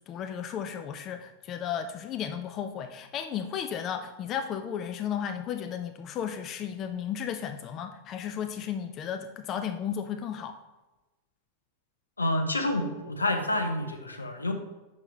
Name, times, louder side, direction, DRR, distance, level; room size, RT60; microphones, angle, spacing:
voice 1, 0.1-10.6, left 8 dB, 35° left, 8 dB, 0.4 m, -34 dB
voice 2, 12.2-14.5, left 1 dB, 80° left, 5 dB, 0.7 m, -28 dB
6.4 x 5.5 x 3.2 m, 1.1 s
figure-of-eight pair, 90°, 0 cm